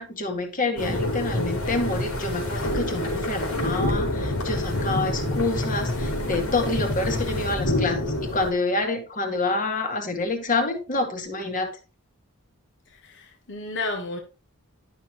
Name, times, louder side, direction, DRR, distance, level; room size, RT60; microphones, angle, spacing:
voice 1, 0.0-11.8, left 2 dB, 35° left, 1.9 m, -27 dB
sound 1, 0.8-8.5, left 1 dB, 85° left, 3.7 m, -27 dB
voice 2, 12.9-14.2, left 3 dB, 55° left, 1.3 m, -32 dB
11.5 x 6.4 x 3.0 m
head